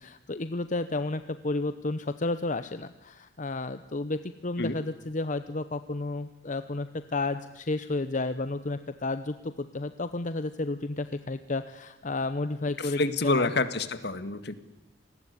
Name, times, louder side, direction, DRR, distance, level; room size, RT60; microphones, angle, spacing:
voice 1, 0.0-13.5, left 2 dB, 45° left, 11 dB, 0.9 m, -32 dB
voice 2, 12.8-14.5, left 3 dB, 65° left, 12 dB, 1.9 m, -28 dB
27.5 x 19.5 x 9.8 m, 0.98 s
head